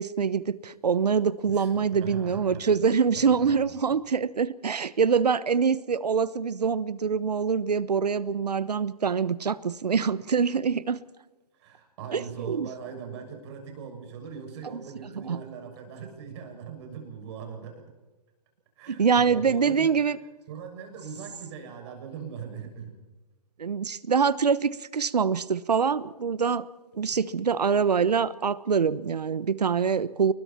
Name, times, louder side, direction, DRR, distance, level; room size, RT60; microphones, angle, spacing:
voice 1, 0.0-11.0 12.1-12.7 14.6-14.8 15.1-15.4 18.9-20.2 23.6-26.7 26.9-30.3, right 6 dB, 75° right, 18 dB, 1.2 m, -25 dB
voice 2, 1.5-2.6 3.2-3.5 11.6-17.8 18.8-19.9 20.5-23.0, right 6 dB, 45° right, 4 dB, 7.0 m, -40 dB
30.0 x 21.5 x 4.5 m, 1.1 s
figure-of-eight pair, 130°, 21 cm